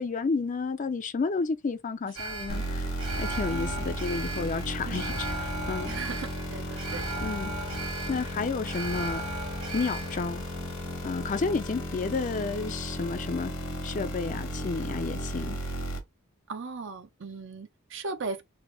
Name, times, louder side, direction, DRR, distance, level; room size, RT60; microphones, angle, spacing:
voice 1, 0.0-2.9 3.2-5.9 7.2-7.5 8.1-9.2 9.7-10.4 11.0-13.5 13.8-15.6, left 4 dB, 35° left, 0.4 m, -31 dB
Alarm, 2.1-12.4 12.8-12.9, right 2 dB, 80° right, 1.3 m, -38 dB
sound 1, 2.5-16.0, equal, 70° left, 1.1 m, -35 dB
voice 2, 5.8-7.2 16.5-18.4, right 4 dB, 60° right, 0.6 m, -38 dB
3.3 x 2.0 x 3.6 m
head